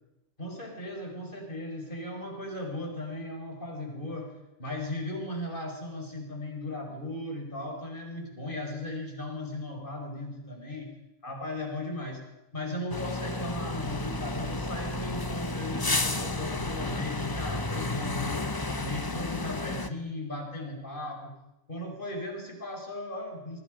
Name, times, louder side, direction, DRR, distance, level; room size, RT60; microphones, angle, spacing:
voice 1, 0.4-10.9 11.2-12.2 12.5-18.4 18.8-21.3 21.7-23.6, left 1 dB, 45° left, 1 dB, 5.2 m, -37 dB
sound 1, 12.9-19.9, left 2 dB, 20° left, 0.9 m, -32 dB
27.0 x 25.0 x 5.2 m, 0.95 s
omnidirectional pair, 1.2 m